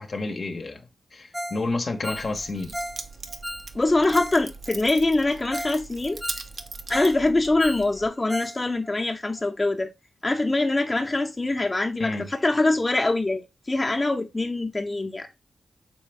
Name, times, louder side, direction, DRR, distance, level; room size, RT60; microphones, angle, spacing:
voice 1, 0.0-2.7 12.0-12.3, left 3 dB, 60° left, 0.9 m, -30 dB
Ringtone, 1.3-1.6 1.9-4.4 4.7-4.8 5.2-5.3 5.5-5.8 6.1-7.2 7.5-8.6 8.8-8.9 9.4-9.5, equal, ahead, 0.4 m, -35 dB
Keys jangling, 2.1-8.1, right 4 dB, 60° right, 0.6 m, -40 dB
voice 2, 3.7-6.2 6.9-9.9 10.2-15.3, left 2 dB, 30° left, 0.8 m, -24 dB
4.5 x 3.3 x 3.3 m
cardioid pair, 45°, 0 cm